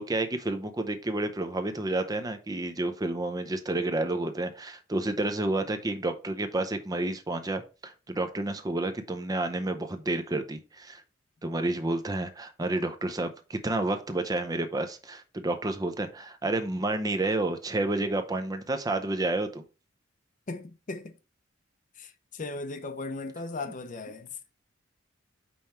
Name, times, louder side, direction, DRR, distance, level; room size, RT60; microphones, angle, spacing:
voice 1, 0.0-11.0 11.4-19.6, right 2 dB, 20° right, 0.6 m, -30 dB
voice 2, 20.5-21.1 22.0-24.3, left 3 dB, 40° left, 0.6 m, -37 dB
5.4 x 4.5 x 4.2 m
head